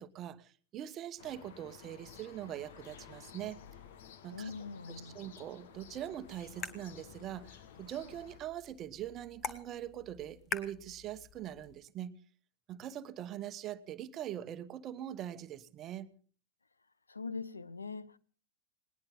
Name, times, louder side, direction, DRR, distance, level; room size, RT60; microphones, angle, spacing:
voice 1, 0.0-3.6 4.2-4.5 4.9-12.2 12.7-16.1, right 11 dB, 30° right, 1.1 m, -42 dB
sound 1, 1.2-8.4, left 8 dB, 55° left, 1.5 m, -54 dB
voice 2, 4.3-5.2 17.1-18.2, left 4 dB, 80° left, 0.7 m, -42 dB
sound 2, 5.7-11.7, left 5 dB, 25° left, 1.6 m, -46 dB
20.0 x 19.5 x 3.8 m
figure-of-eight pair, 90°, 0 cm